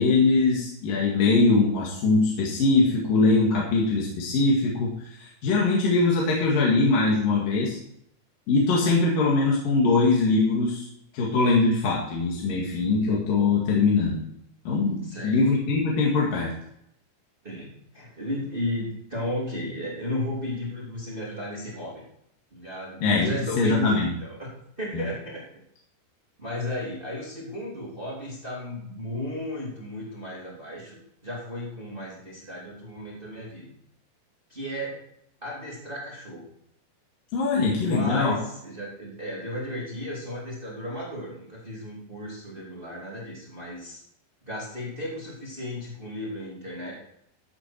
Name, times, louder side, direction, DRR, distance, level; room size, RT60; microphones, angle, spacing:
voice 1, 0.0-7.8 8.5-10.9 11.1-14.2 14.6-16.5 23.0-23.3 23.6-24.1 24.9-25.0 37.3-38.4, left 3 dB, 55° left, -3 dB, 3.4 m, -22 dB
voice 2, 15.0-15.4 17.4-22.0 22.5-24.5 24.8-25.5 26.4-33.7 34.5-35.0 35.4-36.5 37.7-44.0 44.4-46.9, left 1 dB, 15° right, -5 dB, 3.0 m, -34 dB
14.0 x 8.1 x 4.5 m, 0.72 s
omnidirectional pair, 5.1 m